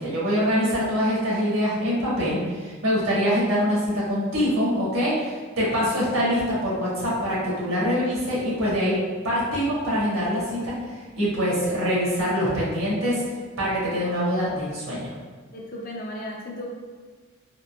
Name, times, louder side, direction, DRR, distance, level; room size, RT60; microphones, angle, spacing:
voice 1, 0.0-9.0 9.2-10.7 11.2-13.2 13.6-15.0, equal, 80° right, -7 dB, 1.5 m, -24 dB
voice 2, 15.5-16.7, left 1 dB, 45° left, -1 dB, 0.5 m, -35 dB
3.8 x 2.8 x 2.3 m, 1.5 s
head